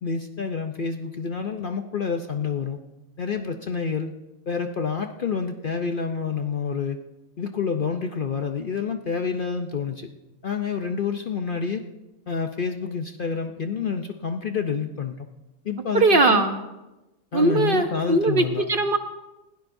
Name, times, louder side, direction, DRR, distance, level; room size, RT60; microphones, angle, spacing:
voice 1, 0.0-2.8 3.2-4.1 4.5-7.0 7.4-10.1 10.4-11.8 12.3-15.3 15.6-16.5 17.3-18.7, left 6 dB, 50° left, 6 dB, 0.7 m, -28 dB
voice 2, 15.9-16.6 17.3-19.0, right 3 dB, 45° right, 7 dB, 0.8 m, -20 dB
22.0 x 16.5 x 2.6 m, 1.0 s
omnidirectional pair, 1.5 m